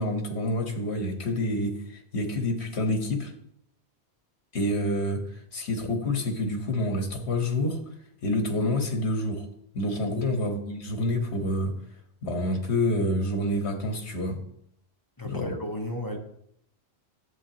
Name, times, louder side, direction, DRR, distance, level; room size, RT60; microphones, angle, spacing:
voice 1, 0.0-3.3 4.5-7.8 8.2-9.5 9.7-11.7 12.2-14.4 15.2-15.5, left 1 dB, 70° left, 4 dB, 1.7 m, -28 dB
voice 2, 15.2-16.2, left 1 dB, 20° left, 2 dB, 1.0 m, -34 dB
11.0 x 8.1 x 3.0 m, 0.71 s
omnidirectional pair, 1.1 m